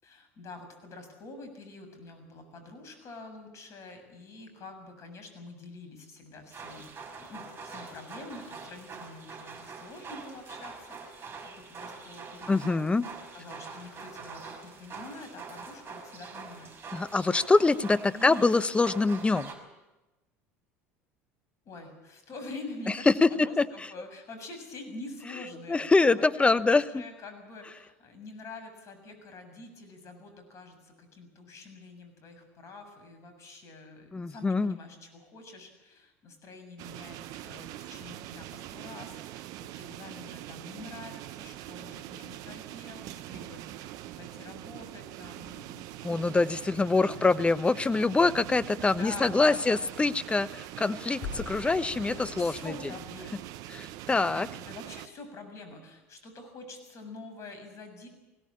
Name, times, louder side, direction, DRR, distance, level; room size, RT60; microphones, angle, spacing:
voice 1, 0.0-12.6 13.3-16.7 17.0-17.6 18.1-18.6 21.7-26.6 26.9-46.3 46.8-47.2 48.9-49.8 51.9-53.5 53.9-58.1, left 3 dB, 45° left, 7 dB, 7.1 m, -46 dB
sound 1, 6.5-19.5, right 4 dB, 35° right, 5.7 m, -44 dB
voice 2, 12.5-13.1 16.9-19.5 23.1-23.7 25.7-27.0 34.1-34.7 46.0-52.7 53.7-54.5, left 3 dB, 15° left, 14 dB, 1.0 m, -25 dB
sound 2, 36.8-55.1, right 14 dB, 60° right, 0.9 m, -43 dB
sound 3, 51.2-54.2, left 5 dB, 70° left, 2.8 m, -43 dB
21.0 x 17.5 x 8.7 m, 1.0 s
hypercardioid pair, 75°, 7 cm